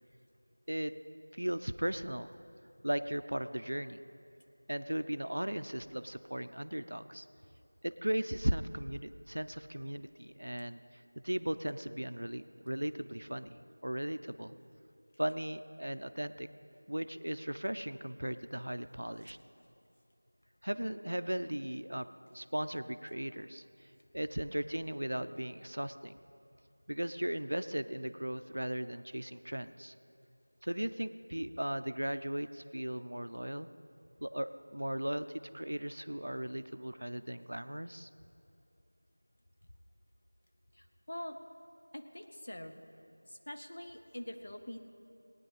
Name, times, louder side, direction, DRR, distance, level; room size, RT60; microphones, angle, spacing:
voice 1, 1.3-2.3 2.8-4.0 4.7-7.3 7.8-14.5 15.2-16.5 16.9-19.4 20.6-22.1 22.3-23.6 24.1-26.1 26.9-29.9 30.6-33.7 34.2-35.3 35.5-38.1, right 1 dB, 70° right, 12 dB, 0.5 m, -37 dB
voice 2, 40.7-41.4 41.9-42.8 43.3-44.8, left 1 dB, 35° left, 5 dB, 0.8 m, -45 dB
19.5 x 9.2 x 5.0 m, 2.7 s
figure-of-eight pair, 180°, 0 cm